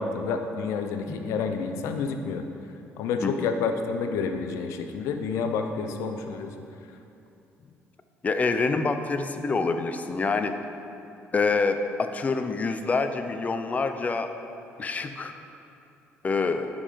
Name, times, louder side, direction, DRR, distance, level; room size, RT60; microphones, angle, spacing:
voice 1, 0.0-2.4 3.0-6.5, left 5 dB, 85° left, 6 dB, 0.7 m, -29 dB
voice 2, 8.2-10.5 11.3-14.3 14.8-15.3 16.2-16.7, left 4 dB, 30° left, 8 dB, 0.6 m, -26 dB
9.8 x 5.5 x 5.1 m, 2.7 s
cardioid pair, 95°, 5 cm